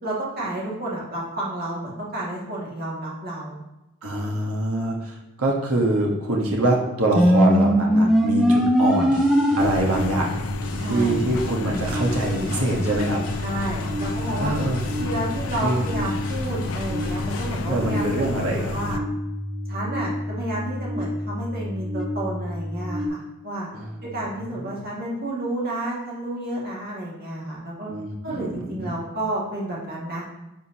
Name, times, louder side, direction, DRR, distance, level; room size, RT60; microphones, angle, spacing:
voice 1, 0.0-3.6 8.4-8.5 10.7-11.2 13.4-14.5 14.9-18.3 18.5-19.0 19.7-23.7 24.0-27.9 28.2-30.2, right 1 dB, 45° right, -5 dB, 2.2 m, -31 dB
voice 2, 4.0-9.2 9.6-10.4 10.8-13.2 14.4-14.8 15.6-15.8 17.7-18.7 23.7-24.2 24.6-24.8 27.9-28.9, right 2 dB, 85° right, -1 dB, 1.5 m, -24 dB
sound 1, 7.2-23.1, equal, ahead, 0.5 m, -25 dB
sound 2, 8.8-17.5, left 2 dB, 40° left, 1.7 m, -40 dB
sound 3, 9.6-19.0, left 4 dB, 70° left, 0.4 m, -33 dB
10.5 x 5.1 x 3.0 m, 0.95 s
head